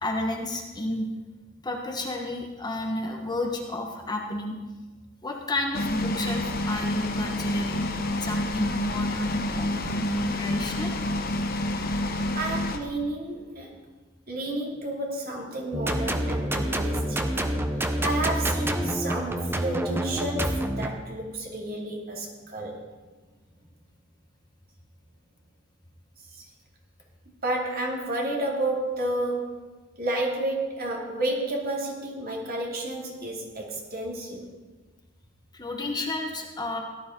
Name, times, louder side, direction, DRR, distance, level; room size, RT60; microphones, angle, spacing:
voice 1, 0.0-1.1 1.6-4.5 5.2-7.9 8.2-10.9 35.5-36.8, left 1 dB, 20° left, 1 dB, 1.4 m, -31 dB
sound 1, 5.7-12.8, left 1 dB, 50° left, 1.0 m, -28 dB
voice 2, 12.3-13.7 14.3-17.4 18.0-22.8 26.3-26.4 27.4-29.6 30.0-34.5, right 1 dB, 50° right, -1 dB, 2.7 m, -31 dB
sound 2, 15.7-20.9, right 1 dB, 10° right, 0.9 m, -27 dB
17.0 x 12.0 x 3.9 m, 1.3 s
head